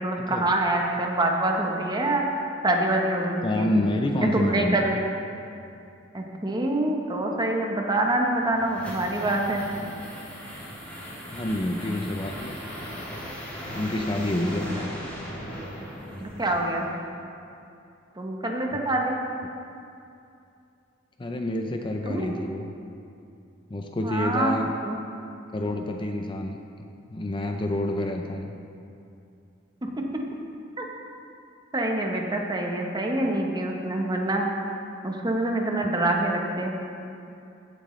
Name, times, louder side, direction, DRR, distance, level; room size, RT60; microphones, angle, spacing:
voice 1, 0.0-3.7 4.3-5.0 6.1-9.7 14.4-14.5 16.2-16.9 18.2-19.2 22.1-22.3 24.0-24.5 24.8-25.0 30.0-30.2 30.8-30.9 31.7-34.4 35.0-36.8, right 1 dB, 20° right, 1 dB, 1.0 m, -26 dB
voice 2, 3.4-5.0 11.3-12.6 13.7-14.8 21.2-22.7 23.7-24.7 25.5-26.6 27.1-28.5, left 1 dB, 25° left, 3 dB, 0.5 m, -28 dB
sound 1, 8.1-17.0, equal, 10° left, 2.7 m, -38 dB
16.0 x 7.6 x 3.2 m, 2.6 s
head